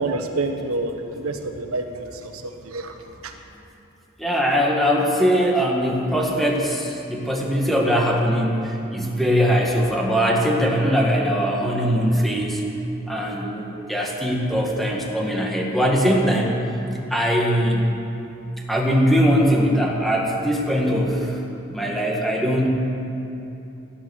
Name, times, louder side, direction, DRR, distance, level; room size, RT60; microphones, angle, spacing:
voice 1, 0.0-2.3 2.6-2.9, right 2 dB, 85° right, 5 dB, 1.3 m, -27 dB
voice 2, 4.2-12.6 13.1-16.6 17.1-17.9 18.7-21.4 21.7-22.7, equal, ahead, -2 dB, 2.0 m, -21 dB
18.0 x 12.0 x 6.7 m, 2.9 s
head